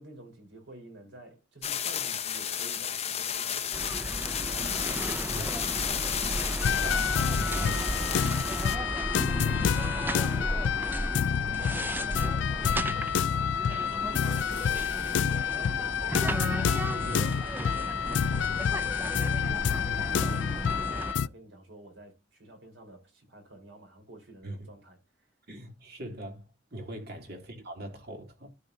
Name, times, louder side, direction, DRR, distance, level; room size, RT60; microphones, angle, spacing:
voice 1, 0.0-7.1 7.6-10.7 11.5-16.4 16.8-19.8 20.2-25.3 26.9-27.1, right 1 dB, 75° right, 4.2 m, -50 dB
sound 1, 1.6-8.8, left 9 dB, 35° left, 0.9 m, -32 dB
sound 2, 3.7-21.1, right 1 dB, 10° right, 0.5 m, -34 dB
sound 3, 6.6-21.3, left 8 dB, 70° left, 0.3 m, -28 dB
voice 2, 6.7-7.3 7.6-7.9 17.0-17.4 24.4-24.6 25.5-26.5 26.7-28.5, right 1 dB, 55° right, 2.8 m, -40 dB
13.5 x 5.3 x 2.7 m
head